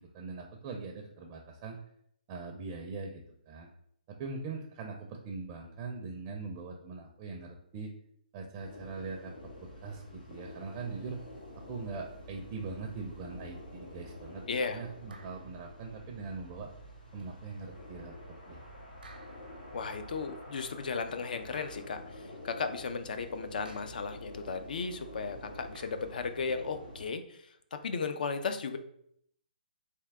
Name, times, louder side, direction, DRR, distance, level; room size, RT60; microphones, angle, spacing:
voice 1, 0.0-1.8 2.3-3.7 4.1-7.9 8.3-9.3 9.6-11.2 11.7-16.7 17.1-18.1 18.5-18.6, right 4 dB, 25° right, 2 dB, 0.4 m, -41 dB
sound 1, 8.6-27.1, left 1 dB, 80° left, 1.2 m, -48 dB
voice 2, 14.5-14.8 19.7-28.8, left 5 dB, 65° left, 8 dB, 0.4 m, -35 dB
sound 2, 15.1-15.7 17.2-17.4 19.0-19.7 21.5-22.2 23.7-24.2 25.7-26.3, right 3 dB, 85° right, 0.6 m, -56 dB
3.4 x 2.8 x 3.4 m, 0.70 s
hypercardioid pair, 150°, 5 cm